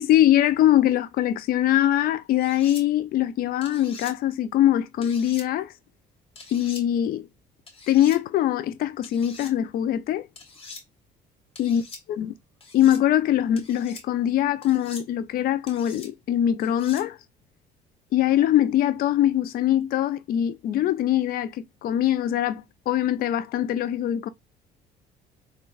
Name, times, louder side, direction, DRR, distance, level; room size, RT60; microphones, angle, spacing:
voice 1, 0.0-5.7 6.5-7.2 7.9-10.3 11.6-11.8 12.1-12.3 12.7-17.2 18.1-24.3, left 12 dB, 60° left, 0.4 m, -22 dB
sound 1, 2.4-2.8 3.6-4.1 5.0-5.5 6.4-6.8 7.7-8.2 9.0-9.5 10.4-10.8 11.6-12.0 12.6-13.0 13.6-14.0 14.6-15.1 15.7-16.1 16.6-17.0, left 4 dB, 35° left, 1.3 m, -43 dB
3.7 x 2.2 x 2.3 m
cardioid pair, 110°, 17 cm